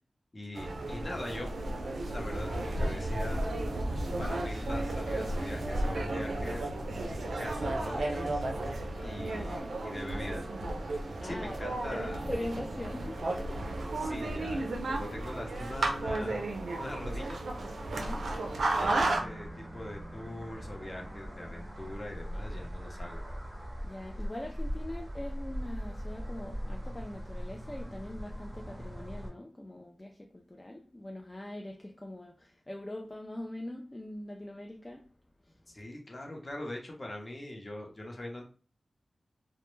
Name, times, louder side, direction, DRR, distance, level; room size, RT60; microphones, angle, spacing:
voice 1, 0.3-1.5 2.1-3.4 4.2-6.7 7.4-8.5 9.0-10.5 11.2-12.3 13.9-16.5 16.8-17.4 18.8-23.2 35.7-38.4, left 1 dB, 40° left, 0.7 m, -42 dB
sound 1, 0.6-19.2, right 2 dB, 85° right, 0.4 m, -33 dB
sound 2, 2.3-9.6, equal, 70° left, 1.0 m, -43 dB
voice 2, 11.2-11.7 12.3-13.7 17.9-18.3 23.8-35.0, left 1 dB, 25° left, 0.3 m, -42 dB
sound 3, 18.8-29.3, equal, 25° right, 0.6 m, -40 dB
2.1 x 2.0 x 3.1 m
cardioid pair, 55°, 0 cm